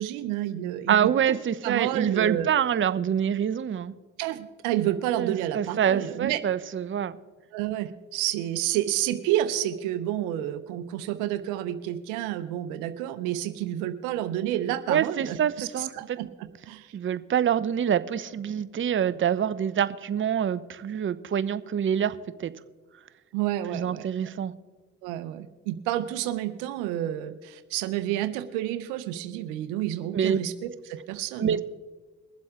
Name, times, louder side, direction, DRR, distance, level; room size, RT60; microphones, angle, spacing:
voice 1, 0.0-1.1 1.6-2.5 4.2-6.4 7.5-16.9 23.3-24.3 25.0-31.6, right 13 dB, 90° right, 11 dB, 0.8 m, -30 dB
voice 2, 0.9-3.9 5.2-7.2 14.9-15.9 16.9-22.5 23.7-24.5 30.1-30.4 31.4-31.6, right 8 dB, 40° right, 13 dB, 0.7 m, -26 dB
23.0 x 7.7 x 3.7 m, 1.4 s
supercardioid pair, 60°, 30 cm